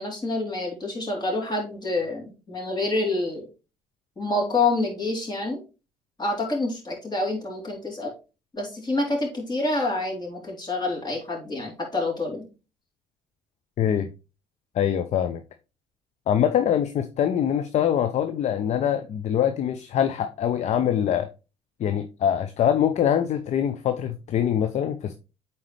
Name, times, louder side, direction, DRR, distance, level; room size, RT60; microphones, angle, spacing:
voice 1, 0.0-3.5 4.2-5.6 6.2-8.1 8.5-12.4, left 2 dB, 30° left, 3.7 m, -27 dB
voice 2, 13.8-14.1 14.7-15.4 16.3-21.3 21.8-25.1, left 9 dB, 50° left, 0.7 m, -24 dB
8.6 x 4.3 x 3.3 m
hypercardioid pair, 55°, 15 cm